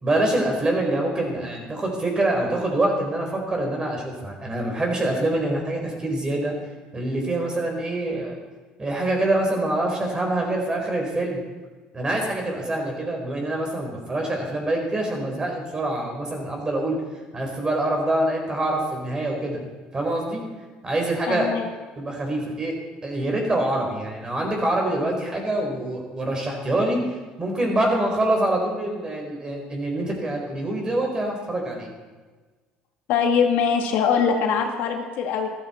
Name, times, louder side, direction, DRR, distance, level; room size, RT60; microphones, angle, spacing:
voice 1, 0.0-6.5 6.9-8.4 8.8-11.4 11.9-17.0 17.3-19.6 19.9-20.4 20.8-21.5 22.0-22.7 23.0-31.9, right 1 dB, 25° right, 1 dB, 4.5 m, -25 dB
voice 2, 21.3-21.7 33.1-35.5, left 6 dB, 70° left, 3 dB, 2.1 m, -22 dB
13.5 x 13.0 x 4.5 m, 1.3 s
supercardioid pair, 100°, 3 cm